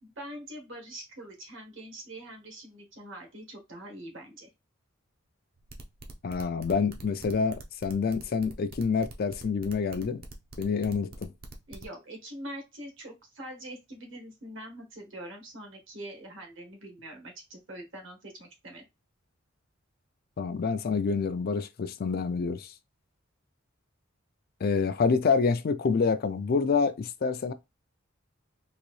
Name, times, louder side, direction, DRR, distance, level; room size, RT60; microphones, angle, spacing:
voice 1, 0.0-4.5 11.7-18.8, right 1 dB, 65° right, 1.5 m, -44 dB
sound 1, 5.6-11.9, right 2 dB, 50° right, 0.7 m, -46 dB
voice 2, 6.2-10.2 10.6-11.3 20.4-22.7 24.6-27.5, left 5 dB, 50° left, 0.4 m, -27 dB
3.9 x 2.6 x 3.1 m
head